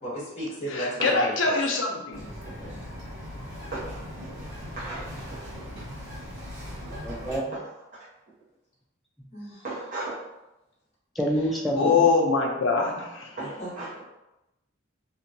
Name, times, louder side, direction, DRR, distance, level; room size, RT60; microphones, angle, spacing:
voice 1, 0.0-1.3 2.6-2.8 9.3-9.6 13.6-13.9, right 1 dB, 35° left, -7 dB, 0.9 m, -34 dB
voice 2, 0.7-2.3 11.8-13.3, left 4 dB, 70° left, 2 dB, 0.5 m, -23 dB
Bird vocalization bird call bird song, 2.1-7.4, equal, 70° right, 1.3 m, -39 dB
voice 3, 3.7-4.3 4.8-5.0 5.3-5.4 7.5-7.7 9.6-10.2 13.4-13.9, right 2 dB, 40° right, -10 dB, 0.8 m, -36 dB
voice 4, 7.0-7.5 11.2-12.0, equal, ahead, -2 dB, 0.3 m, -27 dB
2.7 x 2.2 x 2.5 m, 0.95 s
head